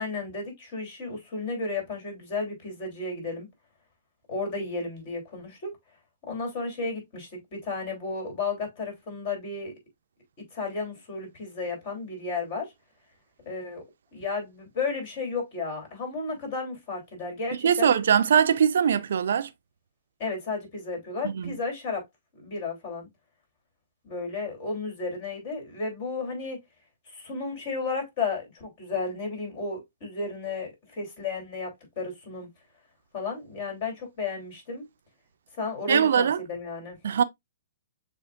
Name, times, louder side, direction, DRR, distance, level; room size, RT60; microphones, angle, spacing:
voice 1, 0.0-3.5 4.3-5.8 6.3-9.7 10.5-12.7 13.4-13.8 14.1-17.9 20.2-22.0 22.3-23.1 24.0-26.6 27.1-32.5 33.1-34.8 35.6-37.0, left 4 dB, 45° left, 3.3 m, -33 dB
voice 2, 17.6-19.5 21.2-21.5 35.9-36.4 37.0-37.2, right 8 dB, 70° right, 0.5 m, -21 dB
7.1 x 2.9 x 2.5 m
hypercardioid pair, 135°, 0 cm